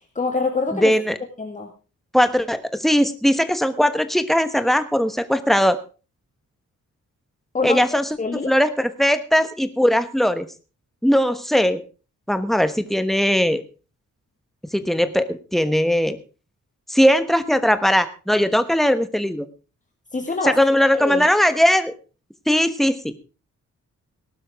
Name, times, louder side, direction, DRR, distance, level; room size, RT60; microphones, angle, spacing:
voice 1, 0.2-0.9 1.4-1.7 7.5-7.8 8.2-8.5 20.1-20.6 21.0-21.3, left 3 dB, 25° left, 3 dB, 1.9 m, -24 dB
voice 2, 0.7-1.2 2.1-5.8 7.6-10.5 11.0-11.8 12.3-13.6 14.7-16.2 16.9-19.5 20.4-21.9 22.5-23.2, equal, ahead, 11 dB, 1.2 m, -19 dB
18.5 x 12.0 x 3.6 m, 0.34 s
wide cardioid pair, 140°, 31 cm